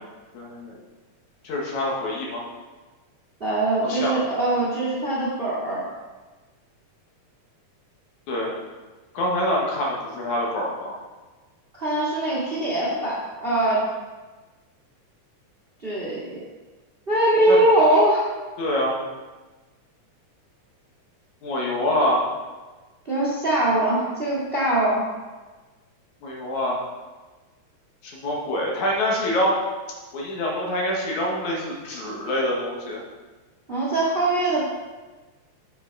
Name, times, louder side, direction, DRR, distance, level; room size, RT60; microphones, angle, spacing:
voice 1, 0.3-0.8 1.4-2.4 3.8-4.2 8.3-8.5 9.1-10.9 17.5-17.6 18.6-19.0 21.4-22.2 26.2-26.8 28.0-29.6 30.1-33.0, left 1 dB, 75° left, -3 dB, 2.9 m, -25 dB
voice 2, 3.4-5.8 11.7-13.8 15.8-16.4 17.1-18.3 23.0-25.0 33.7-34.7, right 1 dB, 20° right, -6 dB, 1.7 m, -22 dB
8.9 x 6.4 x 4.0 m, 1.3 s
omnidirectional pair, 3.4 m